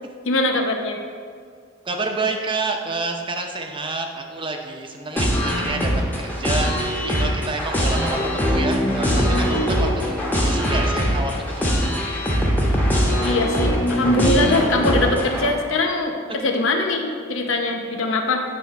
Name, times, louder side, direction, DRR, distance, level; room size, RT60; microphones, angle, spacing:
voice 1, 0.3-1.0 13.2-18.4, left 2 dB, 75° left, 3 dB, 0.8 m, -22 dB
voice 2, 1.8-12.1, right 3 dB, 25° right, 3 dB, 0.7 m, -29 dB
sound 1, 5.2-15.5, equal, 10° left, 1.0 m, -21 dB
9.2 x 3.5 x 5.3 m, 2.1 s
head